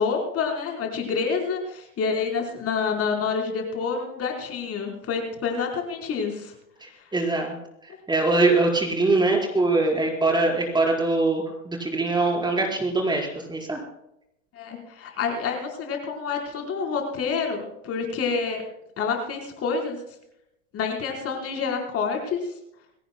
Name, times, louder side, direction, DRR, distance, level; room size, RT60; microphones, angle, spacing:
voice 1, 0.0-6.5 14.5-18.6 19.0-20.0 20.7-22.4, left 5 dB, 30° left, 1 dB, 4.3 m, -28 dB
voice 2, 6.8-7.5 7.8-13.8, right 2 dB, 10° right, 1 dB, 4.6 m, -23 dB
22.0 x 18.0 x 2.2 m, 0.81 s
hypercardioid pair, 105°, 43 cm